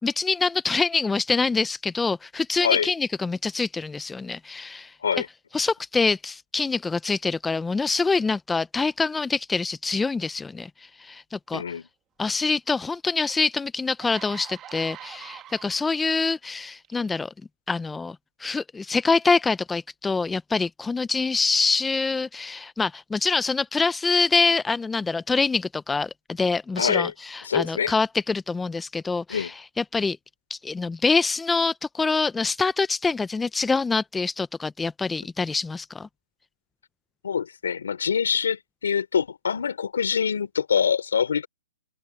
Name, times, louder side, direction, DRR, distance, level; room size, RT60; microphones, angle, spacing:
voice 1, 0.0-4.9 5.5-11.6 12.2-17.3 17.7-30.2 30.5-36.1, left 4 dB, 5° left, 0.3 m, -25 dB
voice 2, 11.5-11.9 26.8-27.1 27.4-27.9 29.3-29.5 37.2-41.5, left 7 dB, 70° left, 3.3 m, -25 dB
sound 1, 13.2-13.3 13.8-16.2 16.8-17.1, right 11 dB, 15° right, 1.4 m, -43 dB
hypercardioid pair, 170°, 0 cm